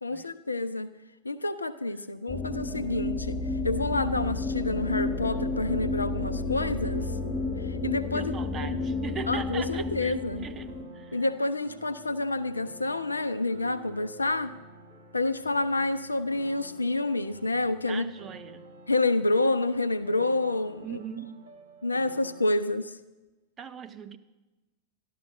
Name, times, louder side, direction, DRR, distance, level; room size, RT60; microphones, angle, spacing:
voice 1, 0.0-0.9 1.2-7.1 7.6-8.3 8.6-8.8 9.3-10.5 11.1-14.5 15.1-18.1 18.9-21.0 21.8-22.9, left 2 dB, 80° left, 13 dB, 0.6 m, -28 dB
sound 1, 2.3-10.8, left 3 dB, 35° left, 1.4 m, -31 dB
sound 2, 4.7-22.5, right 2 dB, 65° right, 1.8 m, -50 dB
voice 2, 8.1-10.2 10.4-11.2 17.9-18.7 20.8-21.4 23.6-24.2, right 7 dB, 25° right, 10 dB, 0.8 m, -40 dB
12.0 x 12.0 x 5.1 m, 1.1 s
figure-of-eight pair, 90°, 0 cm